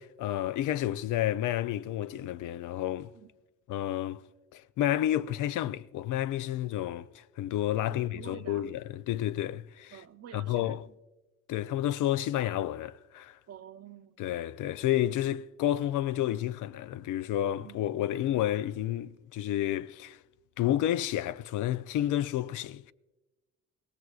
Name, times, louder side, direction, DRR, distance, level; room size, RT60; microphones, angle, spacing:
voice 1, 0.0-3.1 3.7-4.2 4.5-10.0 10.3-10.8 11.5-13.4 14.2-20.2 20.6-22.9, left 12 dB, 80° left, 0.5 m, -30 dB
voice 2, 7.9-8.7 9.9-11.0 13.5-14.2 17.6-17.8, right 9 dB, 55° right, 0.7 m, -48 dB
21.5 x 17.0 x 2.4 m
cardioid pair, 90°, 30 cm